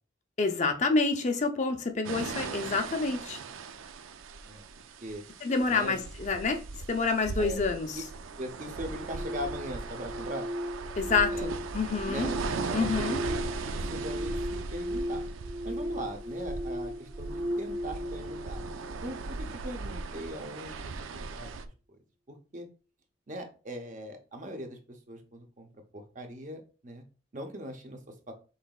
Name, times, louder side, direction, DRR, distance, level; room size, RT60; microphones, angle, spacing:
voice 1, 0.4-3.4 5.4-6.6 6.9-8.0 11.0-12.3 12.7-13.2, left 4 dB, 35° left, 0.5 m, -28 dB
sound 1, 2.0-21.7, right 4 dB, 85° right, 0.5 m, -38 dB
voice 2, 5.7-6.0 7.4-7.6 7.9-8.0 8.4-10.5 11.3-11.5 12.1-12.4 12.7-15.2 15.6-18.6 19.0-21.6 22.3-22.7 23.3-25.7 25.9-27.0 27.3-28.3, equal, 40° right, 0.8 m, -40 dB
sound 2, 8.8-19.8, equal, 65° right, 1.5 m, -37 dB
5.5 x 3.9 x 2.4 m
head